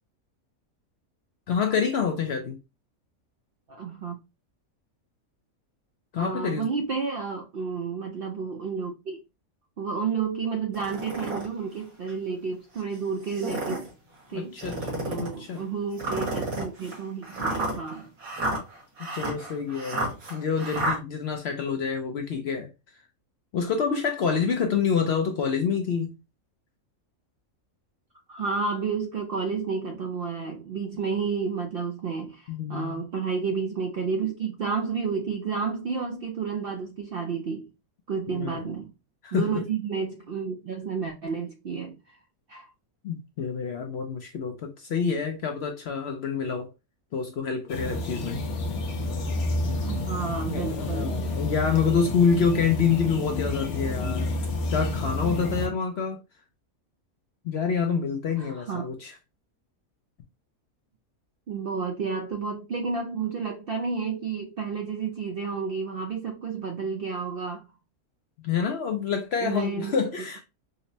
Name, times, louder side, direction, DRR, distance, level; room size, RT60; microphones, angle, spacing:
voice 1, 1.5-2.6 6.1-6.7 14.3-14.8 15.2-15.6 19.0-22.7 23.5-26.2 32.5-33.0 38.3-38.6 39.2-39.6 43.0-46.7 47.1-48.4 50.5-54.3 54.7-56.2 57.4-59.2 68.4-70.4, left 6 dB, 60° left, 0.7 m, -27 dB
voice 2, 3.7-4.2 6.2-9.2 9.8-13.9 14.3-14.6 15.1-18.1 19.1-19.2 28.3-37.7 38.1-38.9 39.3-42.0 42.5-42.7 49.9-51.2 58.4-58.9 61.5-67.7 69.4-70.0, right 5 dB, 65° right, 0.5 m, -31 dB
sound 1, 10.7-11.5 12.1-12.2 13.2-13.9 14.6-15.3 16.0-21.0, right 2 dB, 85° right, 2.3 m, -31 dB
sound 2, 47.7-55.7, left 2 dB, 80° left, 1.3 m, -30 dB
5.2 x 2.0 x 2.7 m
omnidirectional pair, 1.5 m